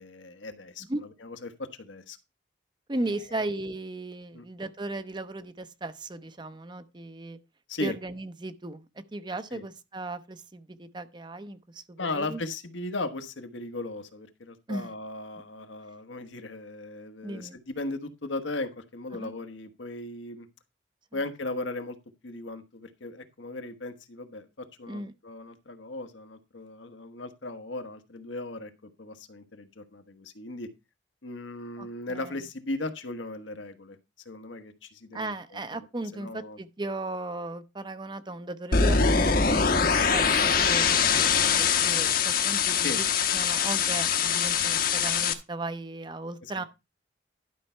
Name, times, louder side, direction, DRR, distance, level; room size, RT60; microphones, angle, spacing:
voice 1, 0.0-0.8 1.2-2.2 3.3-3.4 4.3-4.4 7.7-7.9 9.5-9.6 12.0-20.5 21.1-22.0 22.2-28.7 29.0-30.7 31.2-34.0 34.2-35.9 36.1-36.6 39.7-39.8 42.8-43.0 46.4-46.6, left 2 dB, 80° left, 1.2 m, -37 dB
voice 2, 2.9-7.4 7.8-8.8 9.1-12.4 14.7-14.9 17.2-17.6 19.1-19.3 24.9-25.1 31.8-32.3 35.1-43.0 43.3-46.6, right 2 dB, 25° right, 0.6 m, -36 dB
sound 1, 38.7-45.3, left 6 dB, 50° left, 1.0 m, -23 dB
11.5 x 5.6 x 4.4 m
head